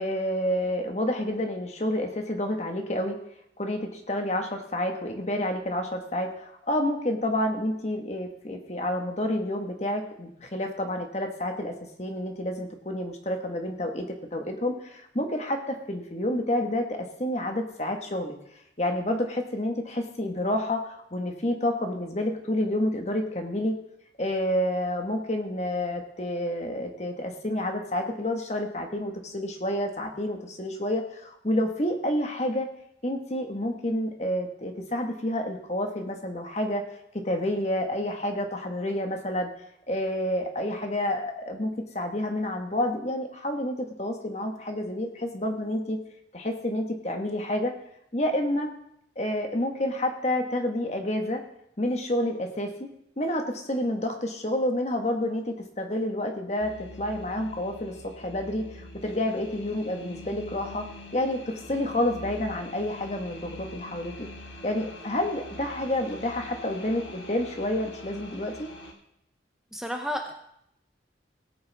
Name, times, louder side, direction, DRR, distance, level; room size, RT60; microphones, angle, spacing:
voice 1, 0.0-3.2 3.6-18.4 18.8-23.8 24.2-32.7 33.0-36.8 37.1-39.5 39.9-46.0 46.3-47.7 48.1-48.7 49.1-51.4 51.8-52.9 53.2-60.9 61.1-64.3 64.6-68.7, left 1 dB, 35° left, 4 dB, 1.4 m, -29 dB
sound 1, 56.6-68.9, left 1 dB, 85° left, 1.8 m, -44 dB
voice 2, 69.7-70.3, equal, 5° right, 3 dB, 0.6 m, -31 dB
17.5 x 8.8 x 3.5 m, 0.76 s
head